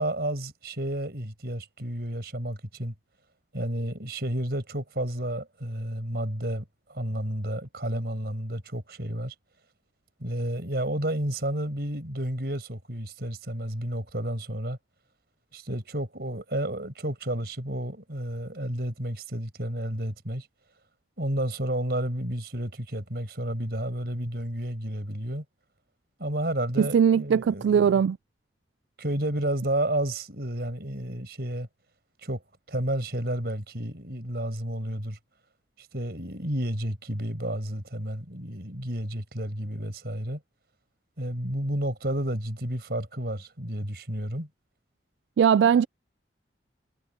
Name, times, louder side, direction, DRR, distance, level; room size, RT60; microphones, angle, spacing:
voice 1, 0.0-2.9 3.5-6.6 6.9-9.3 10.2-14.8 15.5-20.5 21.2-25.4 26.2-28.0 29.0-31.7 32.2-32.4 32.7-35.2 35.8-40.4 41.2-44.5, right 1 dB, 60° right, 5.9 m, -31 dB
voice 2, 26.8-28.2 45.4-45.9, right 7 dB, 90° right, 0.3 m, -20 dB
head